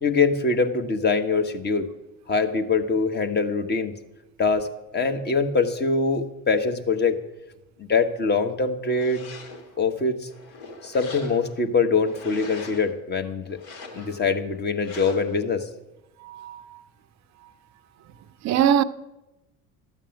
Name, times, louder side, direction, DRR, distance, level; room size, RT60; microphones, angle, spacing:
voice 1, 0.0-1.9 2.3-3.9 4.4-4.7 4.9-7.2 7.8-9.2 9.8-10.3 10.8-13.6 13.9-15.7, left 4 dB, 25° left, 1.2 m, -23 dB
sound 1, 8.9-9.8 10.3-11.6 12.0-12.9 13.5-14.3 14.8-15.4, left 3 dB, 55° left, 2.1 m, -42 dB
voice 2, 16.2-16.8 18.4-18.8, right 9 dB, 40° right, 0.6 m, -22 dB
13.5 x 7.4 x 5.2 m
figure-of-eight pair, 65°, 44 cm